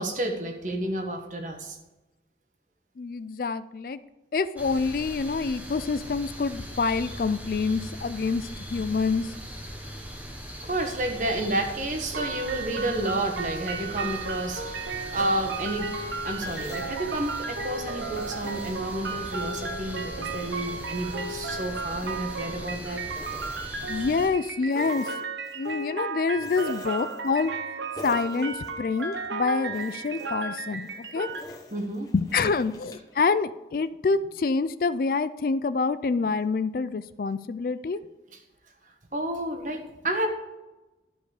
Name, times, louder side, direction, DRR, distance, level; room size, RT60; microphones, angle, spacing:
voice 1, 0.0-1.8 10.7-15.9 16.2-23.0 26.6-26.8 31.7-32.1 39.1-40.3, right 1 dB, 45° right, 4 dB, 1.3 m, -30 dB
voice 2, 3.0-4.0 4.3-9.3 23.9-25.1 25.6-31.3 32.1-38.0, left 4 dB, 50° left, 14 dB, 0.4 m, -27 dB
sound 1, 4.6-24.3, equal, 10° right, 1.1 m, -40 dB
sound 2, 12.1-31.4, right 4 dB, 85° right, 1.0 m, -35 dB
sound 3, 16.4-17.7 18.1-19.7 20.1-22.8 23.1-24.3 24.7-25.9 26.4-27.7 28.0-29.3 29.7-33.2, left 1 dB, 20° left, 1.0 m, -48 dB
12.5 x 5.3 x 4.9 m, 1.1 s
head